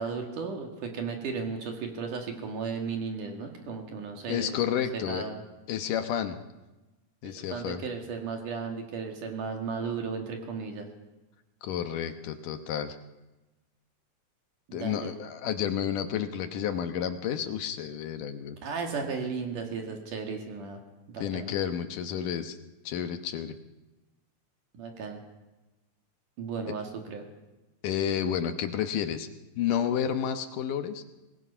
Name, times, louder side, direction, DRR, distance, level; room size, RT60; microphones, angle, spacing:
voice 1, 0.0-4.6 4.9-5.4 7.5-10.9 14.7-15.1 18.6-20.8 21.1-21.5 24.7-25.2 26.4-27.2, right 5 dB, 65° right, 3 dB, 3.5 m, -35 dB
voice 2, 4.3-5.2 5.7-6.4 7.2-7.8 11.6-13.0 14.7-18.6 21.2-22.6 22.9-23.6 27.8-29.3 29.6-31.0, left 9 dB, 70° left, 8 dB, 2.5 m, -30 dB
24.5 x 20.0 x 5.6 m, 1.1 s
omnidirectional pair, 4.0 m